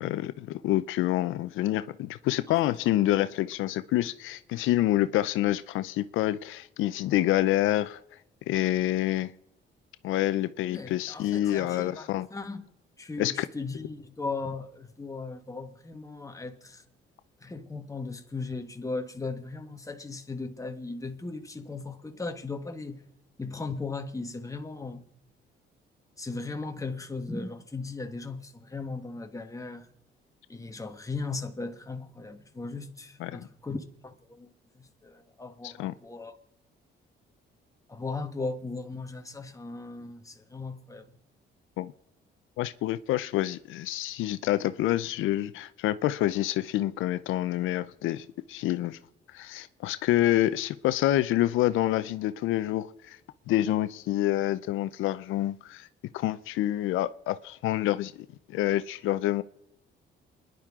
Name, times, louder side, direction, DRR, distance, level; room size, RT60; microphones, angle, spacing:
voice 1, 0.0-8.0 8.5-9.3 10.0-12.3 13.2-13.5 33.2-33.4 35.6-35.9 41.8-41.9 42.6-49.0 49.3-53.2 53.5-55.9 56.1-58.1 58.5-59.4, left 14 dB, 85° left, 0.6 m, -27 dB
voice 2, 10.7-12.7 13.0-16.8 17.4-23.0 23.4-25.1 26.2-29.9 30.5-36.3 37.9-41.1, left 3 dB, 15° left, 1.5 m, -37 dB
28.0 x 10.5 x 3.7 m
cardioid pair, 90°, 20 cm